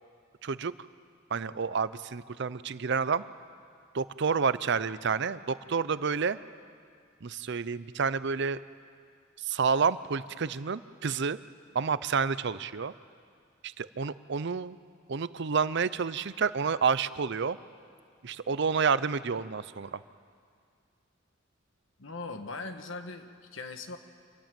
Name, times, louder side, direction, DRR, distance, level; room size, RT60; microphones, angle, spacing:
voice 1, 0.4-0.7 1.3-3.2 3.9-6.4 7.2-8.6 9.4-11.4 11.7-12.9 13.6-14.8 15.1-17.6 18.2-20.0, right 5 dB, 60° right, 16 dB, 0.6 m, -29 dB
voice 2, 22.0-24.0, left 3 dB, 70° left, 7 dB, 1.5 m, -40 dB
26.5 x 14.0 x 9.2 m, 2.2 s
head